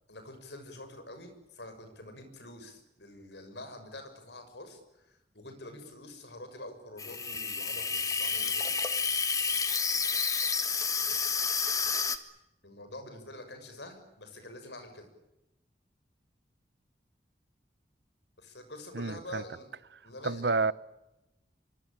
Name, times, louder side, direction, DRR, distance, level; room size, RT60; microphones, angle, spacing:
voice 1, 0.1-8.7 12.6-15.1 18.4-19.7 20.0-20.5, left 1 dB, 75° left, 6.5 m, -46 dB
Water tap faucet / Sink (filling or washing), 7.0-12.2, left 5 dB, 20° left, 1.6 m, -30 dB
voice 2, 18.9-19.4 20.2-20.7, right 4 dB, 70° right, 0.9 m, -29 dB
25.0 x 24.5 x 8.9 m
head